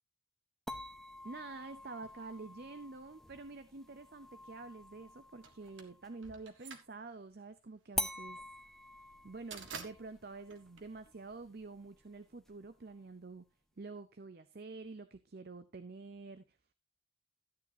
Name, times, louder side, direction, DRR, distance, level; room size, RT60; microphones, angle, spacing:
sound 1, 0.7-6.3 8.0-13.0, left 1 dB, ahead, 0.5 m, -46 dB
voice 1, 1.2-8.4 9.2-13.5 13.8-16.6, right 3 dB, 50° right, 0.6 m, -48 dB
sound 2, 5.4-11.6, right 5 dB, 70° right, 1.5 m, -51 dB
13.5 x 9.2 x 2.8 m
head